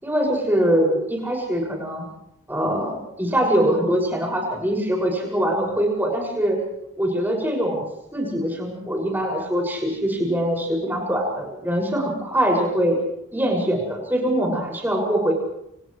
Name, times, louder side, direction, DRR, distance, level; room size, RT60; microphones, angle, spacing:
voice 1, 0.0-2.0 2.5-6.6 7.0-7.8 8.1-13.0 13.3-15.3, equal, 10° right, -1 dB, 6.5 m, -23 dB
30.0 x 28.5 x 3.3 m, 0.79 s
head